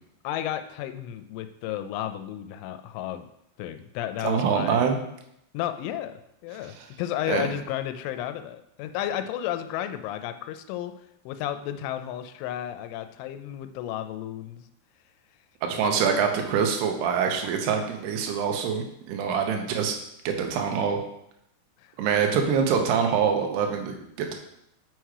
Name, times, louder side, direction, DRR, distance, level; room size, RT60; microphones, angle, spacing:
voice 1, 0.2-3.3 3.6-4.8 5.5-14.7 15.7-16.1 19.6-19.8 21.8-21.9, left 11 dB, 85° left, 9 dB, 2.9 m, -33 dB
voice 2, 4.2-5.0 6.8-6.9 7.3-7.5 15.6-19.9 20.3-21.0 22.0-24.3, right 6 dB, 75° right, 3 dB, 2.6 m, -25 dB
6.5 x 6.1 x 4.6 m, 0.78 s
omnidirectional pair, 5.6 m